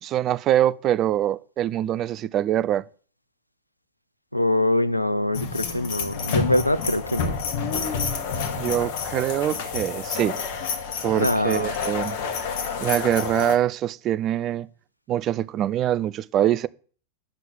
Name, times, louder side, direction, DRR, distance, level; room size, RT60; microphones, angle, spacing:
voice 1, 0.0-2.8 8.5-10.4 11.0-12.2 12.8-14.7 15.1-16.7, right 12 dB, 35° right, 0.4 m, -24 dB
voice 2, 4.3-7.4 11.2-11.7, left 1 dB, 85° left, 0.5 m, -23 dB
sound 1, 5.3-13.6, left 6 dB, 50° left, 1.3 m, -29 dB
9.8 x 6.0 x 7.1 m
figure-of-eight pair, 90°, 0 cm